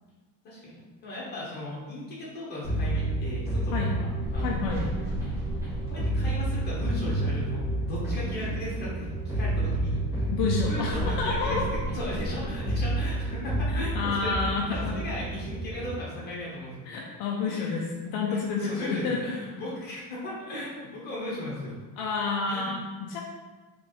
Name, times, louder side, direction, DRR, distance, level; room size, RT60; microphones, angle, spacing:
voice 1, 0.4-4.8 5.9-9.1 9.3-10.0 10.6-16.9 17.4-17.8 18.3-21.8 22.5-22.7, left 1 dB, 25° left, -6 dB, 1.3 m, -37 dB
sound 1, 2.6-15.9, right 1 dB, 5° right, 1.4 m, -29 dB
voice 2, 4.4-4.9 10.3-11.7 13.9-15.0 16.9-19.2 22.0-23.2, left 4 dB, 65° left, -1 dB, 0.6 m, -29 dB
3.5 x 3.4 x 4.1 m, 1.3 s
cardioid pair, 175°, 41 cm